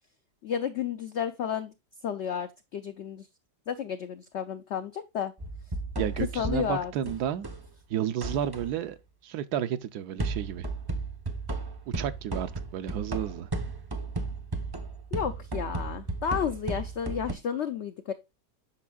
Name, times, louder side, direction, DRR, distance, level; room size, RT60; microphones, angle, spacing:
voice 1, 0.4-1.7 2.0-3.3 3.7-5.3 6.0-6.9 15.1-18.1, left 8 dB, 75° left, 0.6 m, -32 dB
sound 1, 5.4-7.7 8.2-8.8 10.2-17.3, right 2 dB, 35° right, 0.4 m, -34 dB
voice 2, 6.0-7.5 7.9-9.0 9.2-10.7 11.9-13.5, right 10 dB, 75° right, 1.1 m, -31 dB
8.4 x 6.2 x 2.3 m
omnidirectional pair, 1.8 m